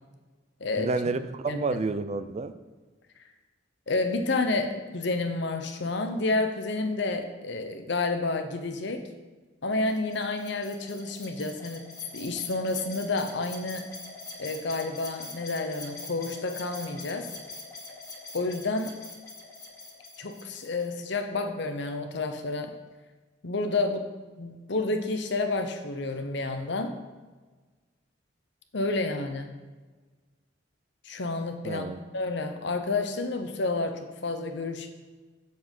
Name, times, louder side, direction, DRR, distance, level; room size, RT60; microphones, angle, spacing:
voice 1, 0.8-2.6 31.6-32.0, right 3 dB, 35° right, 12 dB, 0.5 m, -30 dB
voice 2, 1.5-1.8 3.9-9.1 9.6-11.8 12.1-13.9 14.4-17.3 18.3-19.0 20.2-22.7 23.4-24.1 24.4-27.0 28.7-29.5 31.0-31.8 32.1-34.9, left 3 dB, 65° left, 6 dB, 1.0 m, -30 dB
sound 1, 9.9-20.9, left 3 dB, 20° left, 2.0 m, -44 dB
7.8 x 7.7 x 5.4 m, 1.3 s
head